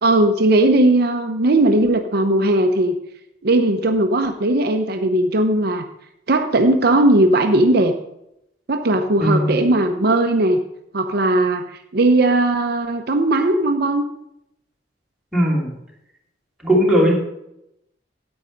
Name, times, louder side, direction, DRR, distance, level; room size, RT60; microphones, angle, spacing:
voice 1, 0.0-3.0 3.4-5.8 6.3-7.9 8.7-10.6 10.9-11.6 11.9-14.0 17.0-17.1, right 1 dB, 60° right, 6 dB, 0.8 m, -17 dB
voice 2, 9.2-9.5 15.3-15.7 16.6-17.1, equal, ahead, -4 dB, 2.8 m, -17 dB
9.5 x 8.8 x 5.3 m, 0.81 s
head